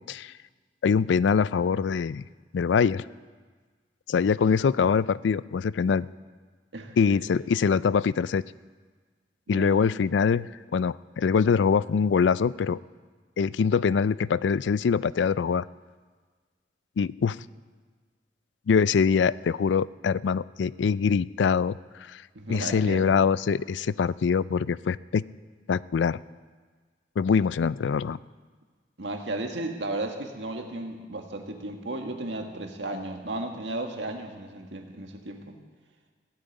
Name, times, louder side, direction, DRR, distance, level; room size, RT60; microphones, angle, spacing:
voice 1, 0.8-2.2 2.5-3.0 4.1-6.1 7.0-8.4 9.5-12.8 13.4-15.6 17.0-17.4 18.7-21.8 22.1-22.2 22.5-25.2 25.7-26.2 27.2-28.2, left 6 dB, 80° left, 19 dB, 0.4 m, -24 dB
voice 2, 6.7-7.3 9.5-9.8 22.4-23.1 29.0-35.5, right 2 dB, 80° right, 4 dB, 1.8 m, -34 dB
16.0 x 8.8 x 9.3 m, 1.5 s
head